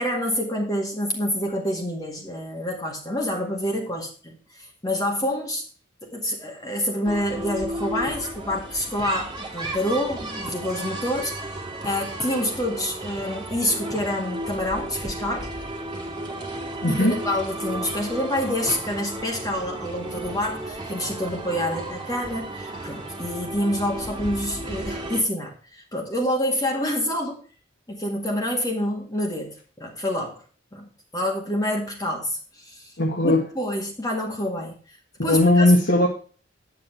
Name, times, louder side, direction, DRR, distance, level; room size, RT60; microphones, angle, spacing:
voice 1, 0.0-5.6 6.0-11.5 11.8-15.5 16.9-27.4 27.9-30.4 30.7-30.9 31.1-32.9 33.2-35.0 35.2-35.7, left 1 dB, 20° left, 0 dB, 2.1 m, -27 dB
sound 1, 7.0-25.2, right 1 dB, 25° right, 2.2 m, -34 dB
voice 2, 16.8-17.2 33.0-33.4 35.2-36.1, left 1 dB, 60° left, -3 dB, 2.1 m, -18 dB
10.5 x 7.8 x 4.5 m, 0.39 s
head